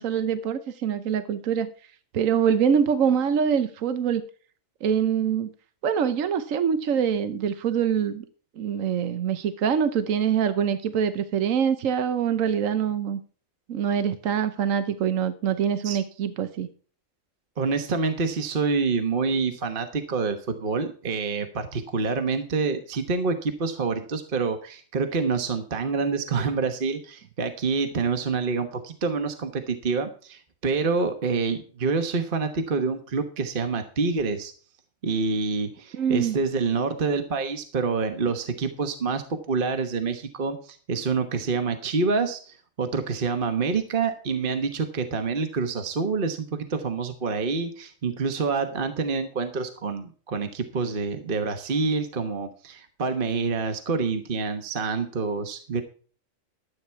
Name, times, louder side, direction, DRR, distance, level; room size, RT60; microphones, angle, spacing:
voice 1, 0.0-1.7 2.1-4.2 4.8-5.5 5.8-8.2 8.6-13.2 13.7-16.7 35.9-36.4, right 7 dB, 75° right, 11 dB, 1.2 m, -24 dB
voice 2, 17.6-34.5 35.0-55.8, right 4 dB, 40° right, 7 dB, 1.3 m, -27 dB
13.0 x 8.4 x 4.6 m, 0.41 s
omnidirectional pair, 1.4 m